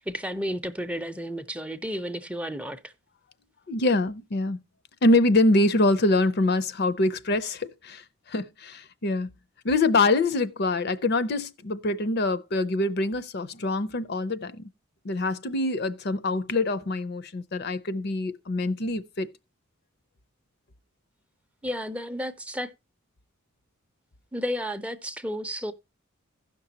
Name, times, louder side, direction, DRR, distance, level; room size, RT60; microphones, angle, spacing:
voice 1, 0.0-2.8 21.6-22.7 24.3-25.7, equal, 5° right, 0.5 m, -32 dB
voice 2, 3.7-4.6 5.0-8.0 8.3-9.3 9.6-14.6 15.0-19.3, left 2 dB, 55° left, 0.6 m, -24 dB
16.0 x 6.0 x 2.8 m
head